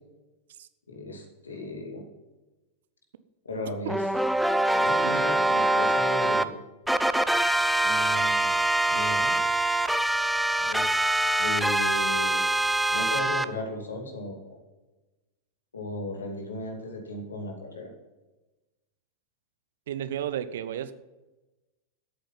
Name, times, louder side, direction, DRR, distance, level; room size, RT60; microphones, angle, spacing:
voice 1, 0.9-2.1 3.4-4.0 4.7-6.6 7.8-8.5 8.9-9.4 10.6-10.9 11.4-12.4 12.9-14.6 15.7-17.9, left 1 dB, 75° left, 2 dB, 2.6 m, -36 dB
sound 1, 3.9-6.4 6.9-13.4, right 1 dB, ahead, 0.5 m, -24 dB
voice 2, 19.9-20.9, right 10 dB, 60° right, 14 dB, 0.7 m, -33 dB
13.5 x 8.6 x 5.6 m, 1.1 s
figure-of-eight pair, 90°, 0 cm